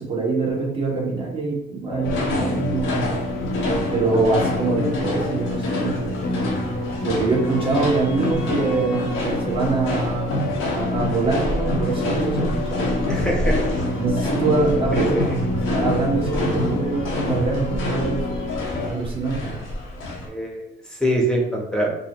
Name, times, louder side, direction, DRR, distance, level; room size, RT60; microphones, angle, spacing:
voice 1, 0.0-3.2 3.9-6.4 7.0-10.4 10.7-13.0 13.9-15.1 15.7-18.3 18.8-19.6, right 3 dB, 25° right, -3 dB, 1.3 m, -24 dB
sound 1, 1.9-18.9, left 2 dB, 60° left, 0.8 m, -29 dB
sound 2, 2.0-20.3, left 1 dB, 85° left, 1.1 m, -27 dB
voice 2, 13.1-13.8 15.0-15.2 20.2-20.6 20.9-21.9, right 1 dB, 5° left, -2 dB, 1.0 m, -23 dB
5.3 x 2.1 x 3.0 m, 0.82 s
cardioid pair, 90°, 20 cm